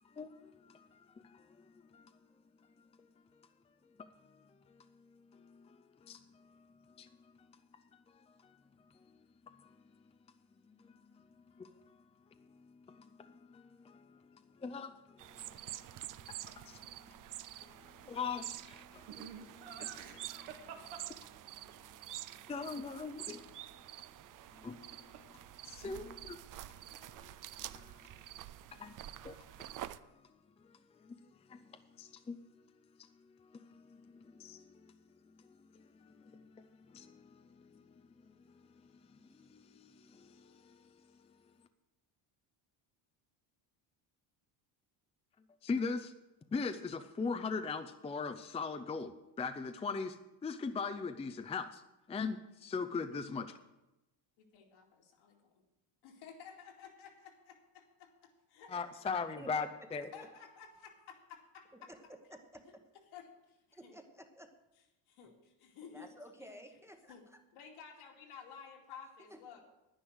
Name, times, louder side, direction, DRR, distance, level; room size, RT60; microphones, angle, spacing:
voice 1, 0.0-2.1 2.8-3.5 3.8-8.6 8.9-10.0 10.7-12.0 12.4-15.8 16.3-17.1 17.6-24.0 24.5-25.3 25.6-28.2 28.7-32.6 33.0-35.0 35.2-41.4 45.6-46.1 46.5-50.2 50.4-51.8 52.1-53.6 58.7-60.1, left 4 dB, 15° left, 0.5 m, -43 dB
sound 1, 15.2-30.0, right 13 dB, 40° right, 0.5 m, -48 dB
Laughter, 19.1-21.8 24.6-25.4 25.6-26.2, right 7 dB, 70° right, 1.7 m, -50 dB
voice 2, 54.4-55.6 56.0-59.2 60.1-61.9 63.1-63.3 63.8-63.9 65.1-66.1 67.1-67.2 67.5-69.6, left 7 dB, 70° left, 2.5 m, -53 dB
voice 3, 59.4-59.7 61.7-62.6 63.8-64.5 65.9-67.4 69.3-69.6, right 1 dB, 5° right, 1.0 m, -53 dB
10.0 x 9.6 x 6.3 m
cardioid pair, 105°, 50 cm